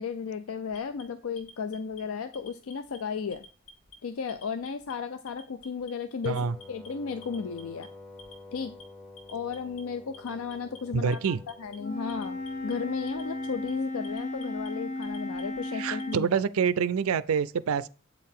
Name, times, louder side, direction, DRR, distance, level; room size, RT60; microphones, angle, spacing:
voice 1, 0.0-3.4 4.0-6.4 6.7-7.9 8.5-8.7 9.3-16.4, left 6 dB, 75° left, 0.4 m, -34 dB
Alarm, 0.7-2.0 2.3-3.0 3.3-4.0 4.3-4.9 5.3-5.9 6.2-6.9 7.2-7.9 8.2-8.8 9.2-9.8 10.1-10.8 11.1-11.8 12.1-12.7 13.1-13.7 14.0-14.7 15.0-16.2, left 3 dB, 55° left, 1.1 m, -51 dB
voice 2, 6.2-6.5 10.9-11.4 15.7-17.9, right 6 dB, 70° right, 0.4 m, -26 dB
Wind instrument woodwind instrument, 6.3-13.9, left 2 dB, 5° left, 0.9 m, -49 dB
Wind instrument woodwind instrument 2, 11.8-16.2, left 2 dB, 30° left, 0.7 m, -35 dB
8.0 x 4.5 x 3.6 m
head